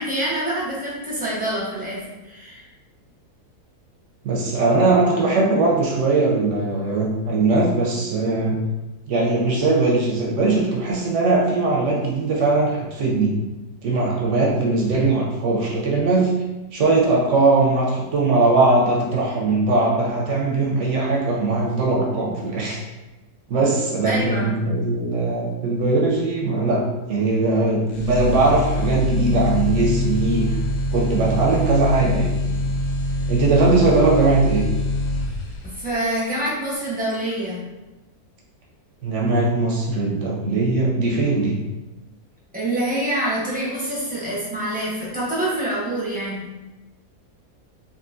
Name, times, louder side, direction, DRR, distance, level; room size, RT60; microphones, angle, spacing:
voice 1, 0.0-2.6 24.0-24.5 35.7-37.6 42.5-46.5, right 1 dB, 10° right, -8 dB, 0.5 m, -26 dB
voice 2, 4.2-8.6 9.1-13.4 13.8-16.3 16.7-22.8 23.5-30.6 30.9-32.6 33.3-34.7 39.0-41.6, right 3 dB, 65° right, -2 dB, 0.8 m, -20 dB
sound 1, 27.9-35.9, left 1 dB, 70° left, 1.0 m, -24 dB
3.7 x 2.4 x 2.5 m, 1.1 s
omnidirectional pair, 1.6 m